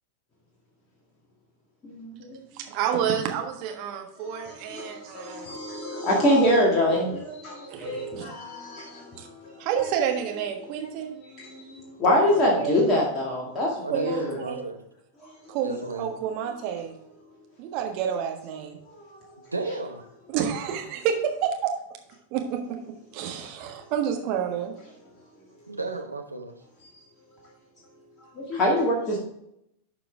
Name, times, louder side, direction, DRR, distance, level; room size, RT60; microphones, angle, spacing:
voice 1, 1.8-2.4 4.3-9.6 11.3-14.4 18.9-19.2 28.4-29.2, left 1 dB, 25° left, -3 dB, 2.0 m, -25 dB
voice 2, 2.5-5.5 7.7-8.2 9.2-9.3 9.6-11.1 12.3-12.7 13.9-14.6 15.5-16.9 17.6-18.8 20.3-21.7 22.3-22.8 23.1-24.7, right 8 dB, 45° right, 3 dB, 1.4 m, -29 dB
voice 3, 12.3-12.7 13.8-14.8 15.6-16.2 19.5-20.0 25.7-26.5, right 3 dB, 80° right, 4 dB, 0.9 m, -33 dB
11.5 x 4.9 x 3.5 m, 0.79 s
figure-of-eight pair, 90°, 0 cm